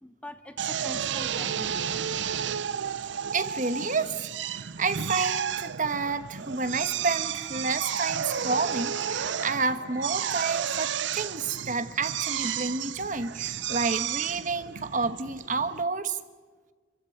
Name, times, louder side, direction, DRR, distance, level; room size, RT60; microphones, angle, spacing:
voice 1, 0.0-2.0, left 1 dB, 5° left, 9 dB, 0.8 m, -43 dB
Drill, 0.6-15.8, right 8 dB, 65° right, 0.6 m, -32 dB
voice 2, 3.3-16.2, right 4 dB, 40° right, 10 dB, 1.2 m, -30 dB
28.0 x 15.0 x 9.3 m, 1.5 s
head